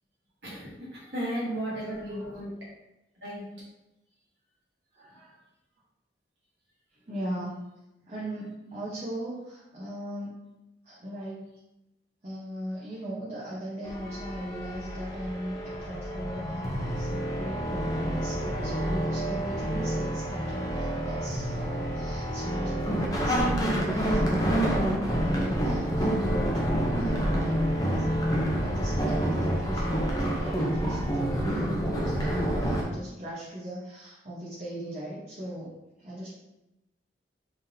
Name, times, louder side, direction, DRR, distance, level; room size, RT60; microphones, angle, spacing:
voice 1, 0.4-2.5 3.2-3.4, equal, 80° right, -8 dB, 1.2 m, -34 dB
voice 2, 1.9-2.3 4.9-5.4 7.0-7.6 8.1-10.4 10.8-11.4 12.2-36.3, equal, 40° right, -8 dB, 0.9 m, -38 dB
sound 1, 13.8-32.8, equal, 20° left, 0.6 m, -28 dB
3.9 x 3.7 x 2.7 m, 0.92 s
head